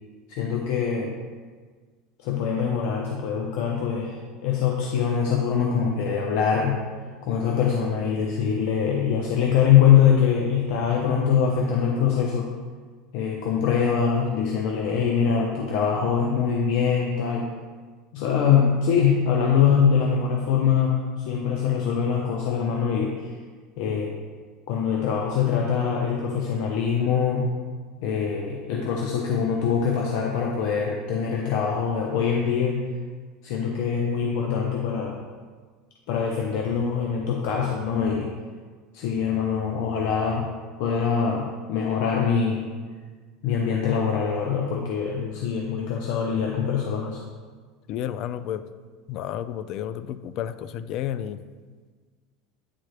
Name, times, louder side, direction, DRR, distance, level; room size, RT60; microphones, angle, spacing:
voice 1, 0.3-1.1 2.2-6.8 7.2-12.5 13.1-17.5 18.1-23.3 23.8-24.2 24.7-27.5 28.0-32.8 33.4-35.2 36.1-38.3 38.9-40.5 40.8-42.7 43.4-47.2, left 7 dB, 70° left, -1 dB, 0.7 m, -23 dB
voice 2, 45.2-45.5 47.9-48.6 49.1-51.4, left 10 dB, 50° left, 13 dB, 0.3 m, -31 dB
9.4 x 3.7 x 3.3 m, 1.5 s
supercardioid pair, 130°, 0 cm